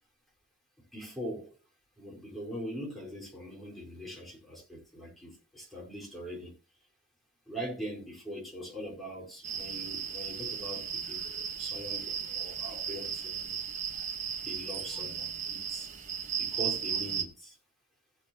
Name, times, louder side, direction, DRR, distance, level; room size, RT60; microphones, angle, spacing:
voice 1, 0.9-1.6 2.0-6.5 7.5-11.2 11.6-13.6 14.4-15.9 16.3-17.6, equal, ahead, 4.7 m, -42 dB
sound 1, 9.4-17.2, right 7 dB, 35° right, 1.3 m, -35 dB
16.0 x 8.9 x 3.0 m
head